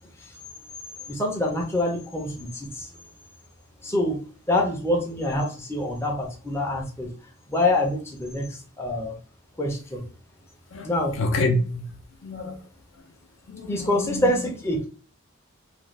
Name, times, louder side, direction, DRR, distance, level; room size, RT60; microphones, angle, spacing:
voice 1, 1.1-2.9 3.8-4.2 4.5-7.1 7.5-9.1 9.6-10.0 10.8-11.2 13.7-14.9, left 1 dB, 10° left, 0.5 m, -26 dB
voice 2, 11.2-11.9 12.2-12.6 13.5-14.3, left 2 dB, 65° left, 0.5 m, -27 dB
2.5 x 2.1 x 3.1 m
head